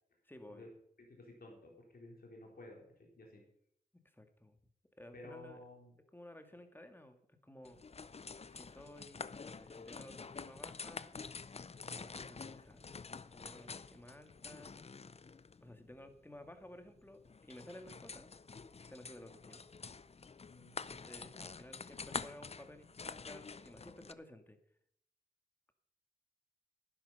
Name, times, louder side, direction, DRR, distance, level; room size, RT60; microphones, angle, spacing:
voice 1, 0.2-0.7 3.9-4.6 5.0-5.6 6.1-7.2 7.4-7.8 8.5-11.1 11.9-13.0 13.3-14.7 15.6-18.3 18.7-19.6 20.9-24.6, left 1 dB, 15° left, 7 dB, 2.0 m, -55 dB
voice 2, 1.1-3.4 5.1-5.9 20.5-20.8, left 2 dB, 75° left, 0 dB, 3.7 m, -53 dB
sound 1, 7.6-24.1, left 4 dB, 40° left, 0.6 m, -48 dB
11.0 x 10.5 x 5.4 m, 0.69 s
cardioid pair, 60°, 16 cm